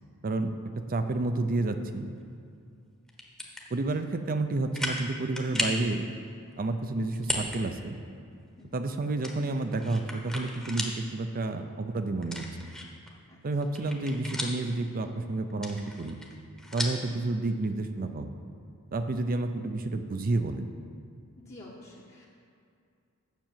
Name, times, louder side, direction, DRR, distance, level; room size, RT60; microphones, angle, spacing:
voice 1, 0.9-2.1 3.7-6.0 6.6-8.0 8.7-12.4 13.4-16.2 16.7-18.3 18.9-20.7, right 2 dB, 40° right, 8 dB, 0.5 m, -30 dB
sound 1, 3.1-3.6 4.2-4.3 4.7-5.1 5.4-5.8 7.2-7.6 8.0-8.1 9.2-11.0 11.4-11.5 12.2-13.1 13.5-14.7 15.5-17.1, left 1 dB, 5° left, 1.0 m, -34 dB
voice 2, 8.6-8.9 13.3-13.4 21.4-22.3, left 1 dB, 30° left, -5 dB, 1.0 m, -49 dB
7.4 x 6.5 x 7.5 m, 2.4 s
head